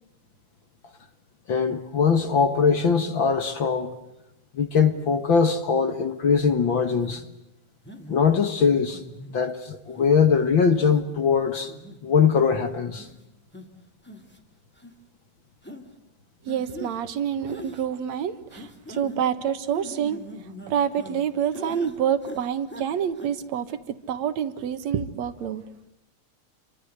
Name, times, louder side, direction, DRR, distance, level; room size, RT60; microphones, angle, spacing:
voice 1, 1.5-3.9 4.5-7.2 8.1-9.0 9.3-11.7 12.0-13.1, left 6 dB, 50° left, 1.9 m, -21 dB
sound 1, 7.0-7.2 7.8-8.4 8.9-9.4 9.9-10.2 10.8-11.0 11.5-12.0 12.5-12.6 13.0-13.2 13.5-13.6 14.0-14.4 14.8-14.9 15.6-15.8 16.5-17.0 17.5-17.8 18.5-19.2 19.7-21.2 21.5-21.9 22.2-22.9 23.1-23.3, left 1 dB, 5° left, 2.4 m, -41 dB
voice 2, 16.5-20.2 20.7-25.6, right 8 dB, 70° right, 2.6 m, -27 dB
29.0 x 24.5 x 8.0 m
omnidirectional pair, 3.3 m